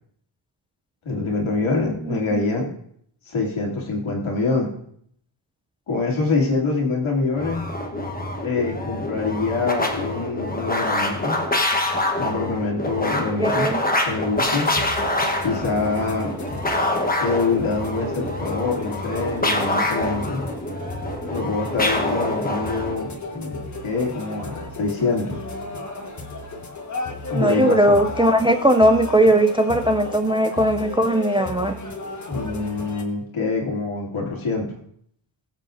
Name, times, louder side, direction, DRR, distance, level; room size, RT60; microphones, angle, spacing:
voice 1, 1.0-2.7 3.3-4.7 5.9-7.7 8.4-11.4 12.2-13.7 14.0-14.7 15.4-16.3 17.2-20.4 21.3-25.4 27.3-28.0 32.3-34.7, left 3 dB, 80° left, -2 dB, 2.7 m, -25 dB
voice 2, 2.0-2.5 13.2-13.8 27.3-31.7, right 1 dB, 10° right, 8 dB, 0.4 m, -19 dB
sound 1, 7.3-23.0, left 1 dB, 20° left, 1.1 m, -26 dB
sound 2, 14.4-33.0, left 2 dB, 35° left, 1.3 m, -34 dB
21.5 x 7.6 x 2.6 m, 0.66 s
wide cardioid pair, 165°, 48 cm